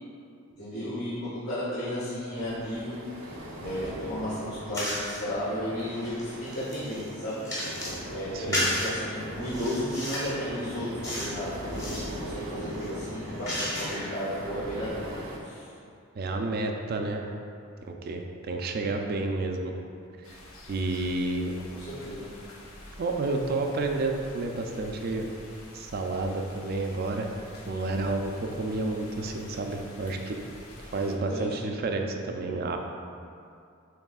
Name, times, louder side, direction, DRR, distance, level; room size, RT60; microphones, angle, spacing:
voice 1, 0.6-3.0 3.6-7.4 8.1-15.1 15.4-15.7 21.8-22.3 31.3-31.7, equal, 55° left, -13 dB, 1.3 m, -34 dB
sound 1, 2.3-15.4, right 1 dB, 75° right, 0.8 m, -40 dB
sound 2, 4.7-5.2 5.8-8.0 8.5-8.9 9.4-10.4 11.0-11.4 11.7-12.1 12.7-14.2, left 1 dB, 15° left, 0.9 m, -33 dB
voice 2, 8.3-8.7 16.1-17.3 17.8-19.7 20.7-21.5 23.0-25.3 25.7-27.3 27.7-30.4 30.8-32.8, right 2 dB, 45° right, 3 dB, 0.4 m, -30 dB
sound 3, 20.2-31.2, left 1 dB, 85° left, 0.7 m, -48 dB
7.1 x 3.2 x 2.3 m, 2.4 s
head